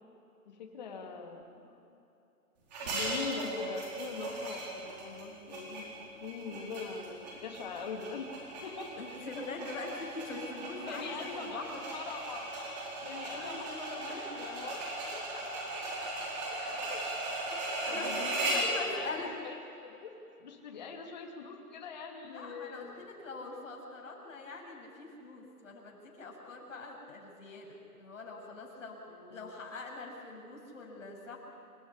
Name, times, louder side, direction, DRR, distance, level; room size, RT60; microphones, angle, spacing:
voice 1, 0.5-2.0 2.8-5.9 6.2-8.3 8.6-8.9 10.8-12.6 13.0-14.8 15.1-15.4 16.5-17.0 17.9-18.6 18.9-19.6 19.8-20.1 20.4-23.0 29.1-29.5, left 5 dB, 30° left, 2 dB, 2.5 m, -43 dB
sound 1, 2.7-18.8, right 2 dB, 25° right, 4.5 m, -38 dB
voice 2, 9.0-11.9 13.3-14.4 17.5-18.2 18.5-19.4 22.2-29.0 29.3-31.4, left 3 dB, 55° left, -2 dB, 7.4 m, -43 dB
28.0 x 15.5 x 9.9 m, 2.8 s
hypercardioid pair, 170°, 46 cm